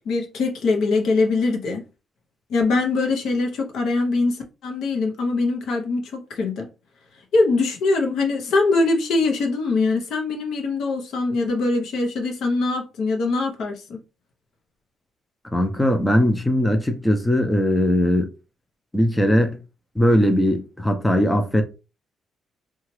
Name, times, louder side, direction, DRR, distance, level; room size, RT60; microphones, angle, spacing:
voice 1, 0.1-1.8 2.5-6.7 7.3-14.0, left 3 dB, 75° left, 0.8 m, -22 dB
voice 2, 15.5-18.3 18.9-19.6 20.0-21.6, equal, 10° left, 0.5 m, -19 dB
2.9 x 2.3 x 3.1 m
cardioid pair, 90°, 0 cm